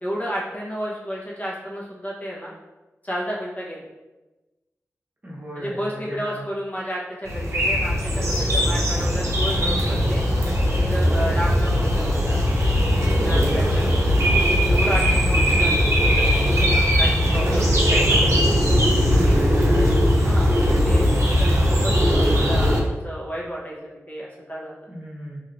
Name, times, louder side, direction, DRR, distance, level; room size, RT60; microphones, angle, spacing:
voice 1, 0.0-2.5 3.0-3.9 5.5-10.2 10.9-12.4 13.2-18.4 19.1-19.4 20.2-22.8 23.0-23.8 24.1-24.9, equal, 30° left, -6 dB, 1.0 m, -32 dB
voice 2, 5.2-6.3 13.4-13.9 16.9-17.6 19.0-20.0 24.9-25.4, equal, 30° right, -5 dB, 0.9 m, -36 dB
sound 1, 7.3-22.8, equal, 65° right, 0.7 m, -19 dB
3.2 x 2.8 x 2.5 m, 1.1 s
cardioid pair, 50°, 5 cm